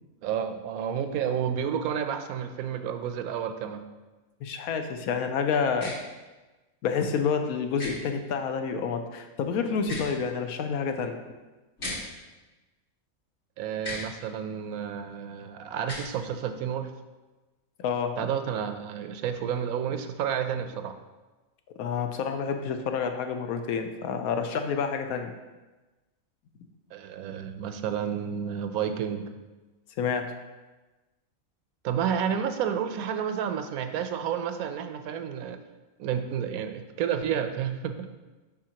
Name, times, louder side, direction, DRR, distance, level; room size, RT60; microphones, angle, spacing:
voice 1, 0.2-3.8 13.6-16.9 18.2-20.9 26.9-29.3 31.8-35.6 36.0-38.1, right 8 dB, 85° right, 8 dB, 1.0 m, -30 dB
voice 2, 4.4-5.9 6.8-11.2 17.8-18.3 21.8-25.3 30.0-30.3, left 6 dB, 85° left, 6 dB, 1.1 m, -28 dB
sound 1, 5.8-5.9 7.8-7.9 9.8-10.1 11.8-12.0 13.8-14.1 15.8-16.1, left 1 dB, 50° left, 2.0 m, -35 dB
6.5 x 5.8 x 2.9 m, 1.2 s
omnidirectional pair, 1.5 m